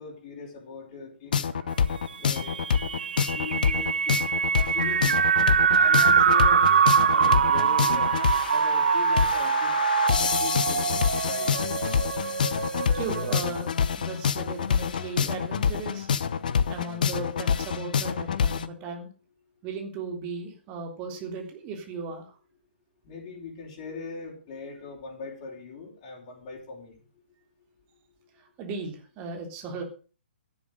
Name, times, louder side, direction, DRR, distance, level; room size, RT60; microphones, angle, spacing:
voice 1, 0.0-1.5 2.2-2.6 3.2-4.2 4.6-5.2 5.7-6.6 7.1-9.7 10.2-10.9 11.2-11.5 23.0-27.0, left 4 dB, 30° left, -2 dB, 4.4 m, -40 dB
sound 1, 1.3-18.7, left 7 dB, 50° left, 1.0 m, -27 dB
sound 2, 2.3-13.4, right 6 dB, 55° right, 0.7 m, -24 dB
voice 2, 12.9-16.1 16.7-19.1 19.6-22.4 28.4-29.8, right 4 dB, 25° right, 3 dB, 3.6 m, -37 dB
13.0 x 11.0 x 6.5 m, 0.38 s
figure-of-eight pair, 130°, 6 cm